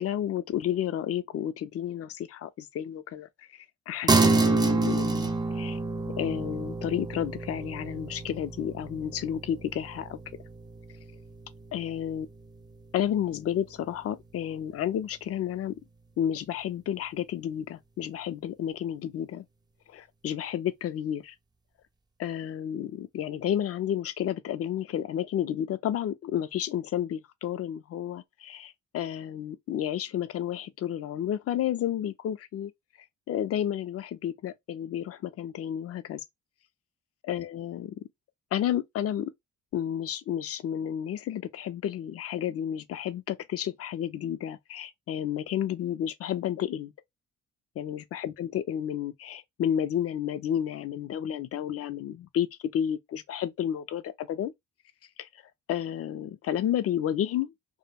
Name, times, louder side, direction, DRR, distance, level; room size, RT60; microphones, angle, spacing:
voice 1, 0.0-5.8 6.2-10.2 11.7-12.3 12.9-15.8 16.2-19.4 19.9-21.3 22.2-32.7 33.3-36.2 37.3-37.9 38.5-39.3 39.7-46.9 47.8-54.5 55.2-55.3 55.7-57.5, left 10 dB, 50° left, 0.4 m, -31 dB
sound 1, 4.1-13.8, right 3 dB, 15° right, 0.4 m, -29 dB
2.2 x 2.0 x 3.3 m
cardioid pair, 90°, 30 cm